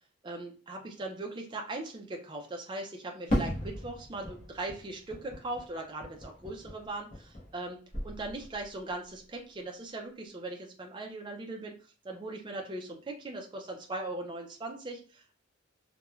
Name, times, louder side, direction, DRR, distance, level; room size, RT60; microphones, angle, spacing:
voice 1, 0.2-11.7 12.0-15.3, right 2 dB, 25° right, 1 dB, 0.3 m, -39 dB
Fireworks, 3.3-7.7 7.9-8.7, equal, 35° left, 0.8 m, -36 dB
3.0 x 2.1 x 2.3 m, 0.37 s
head